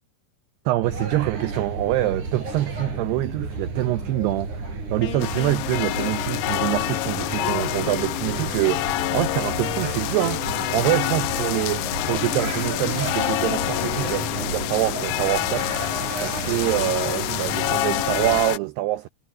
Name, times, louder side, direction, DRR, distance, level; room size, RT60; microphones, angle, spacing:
voice 1, 0.7-15.7 16.2-19.1, right 16 dB, 90° right, 2.3 m, -25 dB
sound 1, 0.8-18.4, right 3 dB, 40° right, 8.6 m, -32 dB
Wind instrument woodwind instrument, 5.0-14.0, left 15 dB, 65° left, 3.2 m, -37 dB
sound 2, 5.2-18.6, left 18 dB, 80° left, 2.9 m, -27 dB
omnidirectional pair, 5.6 m